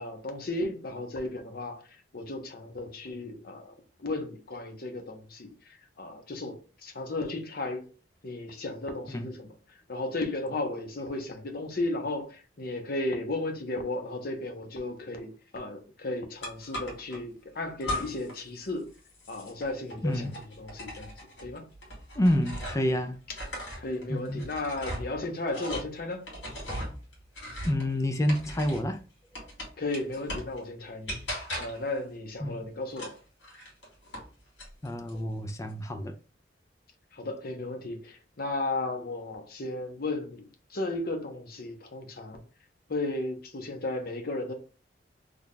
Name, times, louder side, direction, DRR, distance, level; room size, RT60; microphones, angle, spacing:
voice 1, 0.0-1.8 2.1-3.7 4.0-7.9 8.2-9.5 9.9-18.9 19.3-20.3 20.6-21.1 21.4-21.6 23.8-26.3 29.8-33.1 37.1-42.4 42.9-44.5, left 2 dB, 55° left, 0.8 m, -34 dB
sound 1, 16.4-17.2 17.8-18.4 18.7-23.0 23.3-28.9 29.3-30.6 31.1-31.9 32.9-34.3 34.6-35.2, left 1 dB, 75° left, 2.0 m, -38 dB
voice 2, 20.0-20.4 22.2-23.2 24.1-24.5 27.6-29.0 29.4-29.5 32.4-32.7 34.8-36.2, left 1 dB, 15° left, 0.3 m, -28 dB
3.3 x 2.2 x 3.9 m
head